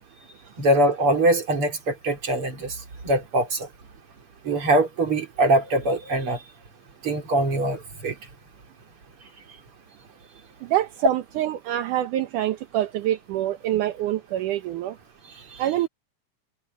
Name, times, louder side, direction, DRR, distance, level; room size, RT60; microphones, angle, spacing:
voice 1, 0.6-2.8 3.0-3.7 4.4-6.4 7.0-8.1, right 1 dB, 40° right, 4.6 m, -22 dB
voice 2, 10.6-15.0 15.6-15.9, right 13 dB, 75° right, 2.6 m, -26 dB
omnidirectional pair, 3.7 m